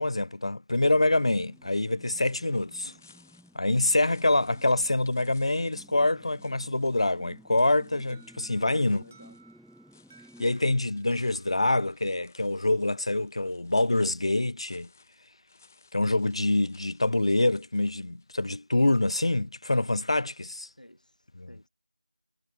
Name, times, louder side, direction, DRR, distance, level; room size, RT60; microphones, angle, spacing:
voice 1, 0.0-2.9 3.5-9.0 10.4-14.9 15.9-20.7 21.4-21.5, left 2 dB, 45° left, 1.0 m, -25 dB
sound 1, 0.8-10.5, equal, ahead, 4.5 m, -56 dB
sound 2, 1.5-18.5, left 4 dB, 20° left, 7.5 m, -62 dB
Alarm, 8.1-12.9, right 5 dB, 15° right, 7.8 m, -61 dB
voice 2, 8.7-9.4 20.8-21.7, left 1 dB, 80° left, 5.7 m, -54 dB
figure-of-eight pair, 170°, 4 cm